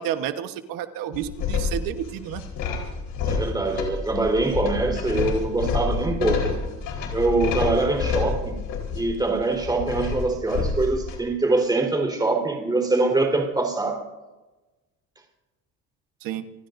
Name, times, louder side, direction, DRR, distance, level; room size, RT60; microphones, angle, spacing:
voice 1, 0.0-2.4 16.2-16.4, right 10 dB, 80° right, 9 dB, 1.3 m, -30 dB
sound 1, 1.1-11.2, left 5 dB, 70° left, 4.5 m, -28 dB
voice 2, 3.3-6.5 7.1-8.6 8.9-14.0, right 2 dB, 10° right, 1 dB, 4.2 m, -24 dB
28.0 x 16.5 x 2.7 m, 1.1 s
cardioid pair, 115°, 33 cm